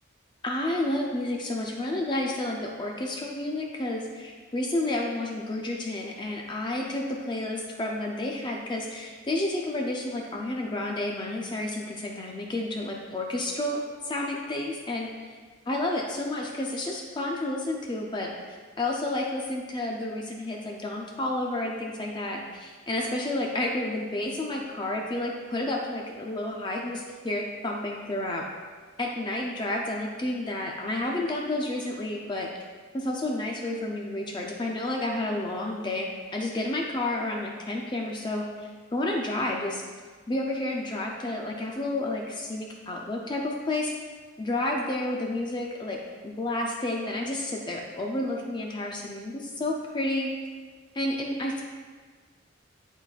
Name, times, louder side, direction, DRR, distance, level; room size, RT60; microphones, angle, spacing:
voice 1, 0.4-15.1 15.7-28.4 29.0-32.5 32.9-39.8 40.3-43.9 44.4-46.0 46.2-50.3 50.9-51.6, left 1 dB, 20° left, -1 dB, 0.5 m, -30 dB
10.0 x 4.0 x 2.4 m, 1.5 s
head